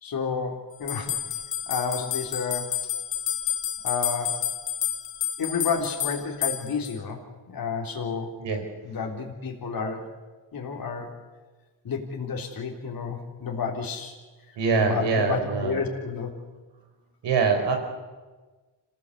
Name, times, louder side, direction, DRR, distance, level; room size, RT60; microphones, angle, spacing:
voice 1, 0.0-1.2 1.7-2.7 3.8-4.4 5.4-8.4 8.8-10.1 10.5-11.2 11.8-14.2 14.5-16.3, left 5 dB, 55° left, 1 dB, 3.7 m, -31 dB
sound 1, 0.9-6.9, left 11 dB, 75° left, 2.0 m, -30 dB
voice 2, 14.6-15.8 17.2-17.8, right 5 dB, 75° right, 4 dB, 5.0 m, -24 dB
27.0 x 16.5 x 8.3 m, 1.3 s
cardioid pair, 70°, 43 cm